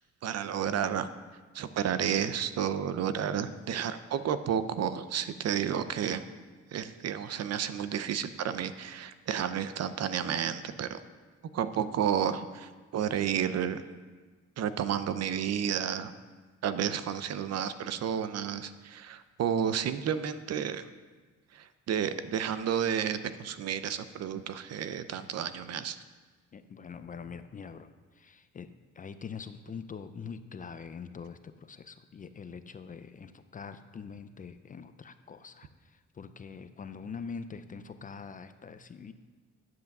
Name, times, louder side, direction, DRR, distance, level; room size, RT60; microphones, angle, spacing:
voice 1, 0.2-1.1 1.5-6.2 6.7-11.0 11.5-13.8 14.6-16.1 16.6-20.9 21.5-26.0, right 8 dB, 60° right, 12 dB, 0.6 m, -31 dB
voice 2, 26.5-27.9 28.2-28.7 29.0-39.1, left 6 dB, 30° left, 10 dB, 0.4 m, -44 dB
9.5 x 7.8 x 6.6 m, 1.4 s
wide cardioid pair, 165°, 29 cm